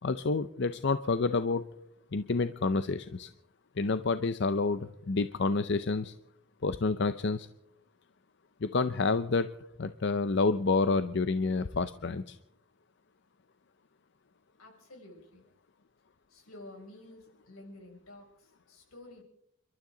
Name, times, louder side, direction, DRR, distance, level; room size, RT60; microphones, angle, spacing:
voice 1, 0.0-1.6 2.1-3.3 3.8-6.1 6.6-7.5 8.6-9.5 9.8-12.4, left 3 dB, 55° left, 11 dB, 0.6 m, -29 dB
voice 2, 14.6-15.5 16.3-19.2, left 2 dB, 80° left, 1 dB, 6.4 m, -51 dB
30.0 x 12.5 x 3.9 m, 0.76 s
head